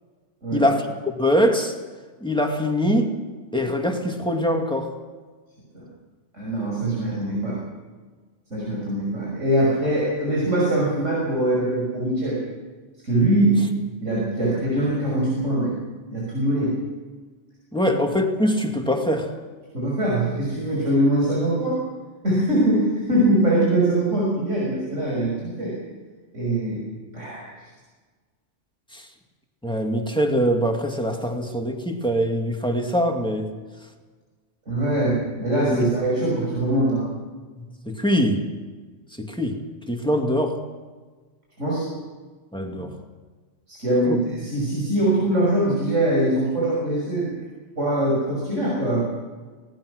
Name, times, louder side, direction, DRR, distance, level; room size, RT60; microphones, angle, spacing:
voice 1, 0.5-1.7 2.2-3.1 3.5-4.9 17.7-19.3 28.9-29.1 29.6-33.5 35.7-35.8 37.9-38.5 39.2-39.6 39.9-40.6 42.5-43.0 44.1-44.2, equal, 5° left, 3 dB, 2.4 m, -23 dB
voice 2, 6.3-7.6 8.5-12.4 13.0-13.6 14.0-15.7 16.1-16.8 19.7-21.8 22.2-25.8 26.3-26.9 27.1-27.7 34.7-37.1 41.6-41.9 43.7-47.3 47.8-49.1, right 1 dB, 90° right, -4 dB, 6.4 m, -22 dB
25.5 x 19.0 x 6.5 m, 1.4 s
omnidirectional pair, 1.2 m